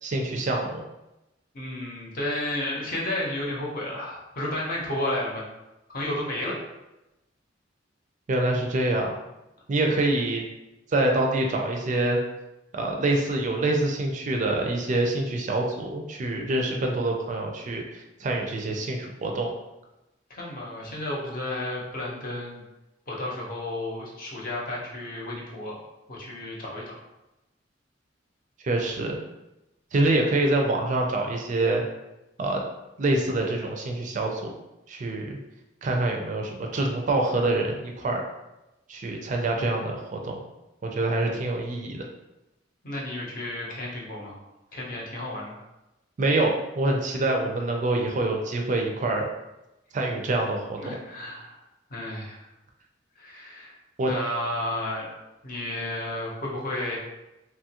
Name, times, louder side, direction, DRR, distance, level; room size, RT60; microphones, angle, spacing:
voice 1, 0.0-0.8 8.3-9.1 9.7-10.4 10.9-12.2 12.7-19.5 28.6-29.2 29.9-31.8 32.4-32.6 33.0-34.5 34.9-35.4 35.8-38.2 38.9-40.4 40.8-42.0 46.2-49.2 49.9-50.8 54.0-54.1, right 2 dB, 40° right, 1 dB, 0.4 m, -26 dB
voice 2, 1.5-5.4 5.9-6.6 20.3-22.6 23.1-25.8 26.1-26.9 42.8-44.4 44.7-45.6 50.8-51.6 51.9-52.5 53.2-55.1 55.4-57.0, left 1 dB, 50° left, -3 dB, 0.7 m, -32 dB
2.9 x 2.3 x 2.8 m, 0.96 s
head